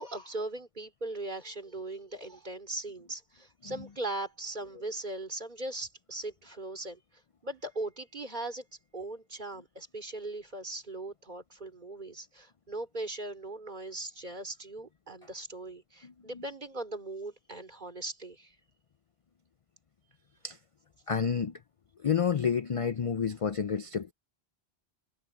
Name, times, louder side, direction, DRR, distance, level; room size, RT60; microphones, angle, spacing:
voice 1, 0.0-7.0 7.4-8.6 8.9-18.5, right 2 dB, 45° right, 3.1 m, -39 dB
voice 2, 16.0-16.4 20.4-20.6 21.1-21.6 22.0-24.1, left 7 dB, 45° left, 0.5 m, -30 dB
omnidirectional pair, 1.1 m